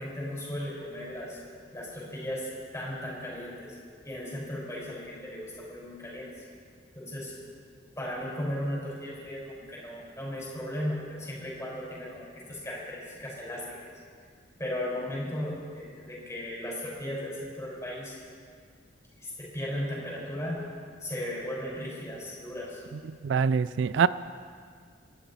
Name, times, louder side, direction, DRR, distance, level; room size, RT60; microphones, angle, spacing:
voice 1, 0.0-1.4 1.7-3.8 4.0-6.3 7.0-7.3 8.0-13.9 14.6-18.2 19.2-20.6 21.0-22.8, left 1 dB, 15° left, -5 dB, 5.3 m, -36 dB
voice 2, 23.2-24.1, right 6 dB, 70° right, 16 dB, 0.4 m, -24 dB
26.0 x 11.5 x 4.3 m, 2.1 s
head